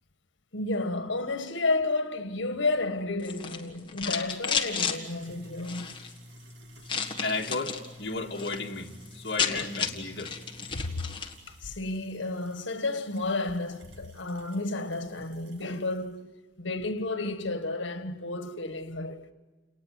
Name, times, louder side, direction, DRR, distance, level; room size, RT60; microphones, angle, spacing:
voice 1, 0.5-5.9 9.5-9.7 10.7-10.9 11.5-16.3 16.6-19.3, left 2 dB, 85° left, 1.6 m, -31 dB
sound 1, 3.2-5.0 5.6-6.1 6.9-7.9 8.2-8.6 8.9-9.0 9.1-11.4, left 6 dB, 25° left, 1.8 m, -32 dB
sound 2, 4.1-16.1, equal, 70° right, 2.5 m, -52 dB
voice 2, 7.2-10.3, left 3 dB, 60° left, 2.0 m, -34 dB
29.5 x 19.5 x 9.4 m
head